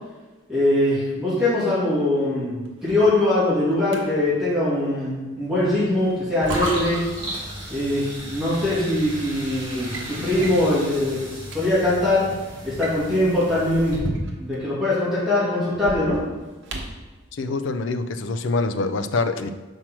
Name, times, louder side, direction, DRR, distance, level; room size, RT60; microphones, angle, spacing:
voice 1, 0.5-7.0 7.7-12.2 12.6-14.0 14.4-16.2, left 1 dB, ahead, -11 dB, 2.5 m, -22 dB
Drawer open or close, 2.7-4.0 5.7-6.9 8.1-8.2 9.1-9.3 9.6-10.1 10.4-10.7 11.2-11.3 11.4-11.6 12.6-14.6 15.7-17.1, right 1 dB, 60° right, 1.0 m, -34 dB
sound 1, 6.4-14.0, right 1 dB, 25° right, 2.0 m, -34 dB
voice 2, 17.3-19.5, left 3 dB, 65° left, 9 dB, 0.5 m, -25 dB
5.9 x 4.5 x 6.1 m, 1.2 s
head